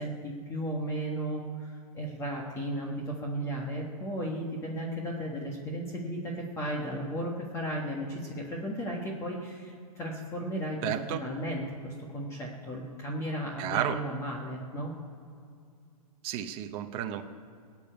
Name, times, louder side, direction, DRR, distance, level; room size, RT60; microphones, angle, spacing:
voice 1, 0.0-15.0, right 1 dB, 15° left, -2 dB, 1.6 m, -35 dB
voice 2, 10.8-11.2 13.6-14.0 16.2-17.2, right 10 dB, 25° right, 5 dB, 0.9 m, -32 dB
16.0 x 7.2 x 9.2 m, 2.4 s
hypercardioid pair, 155°, 20 cm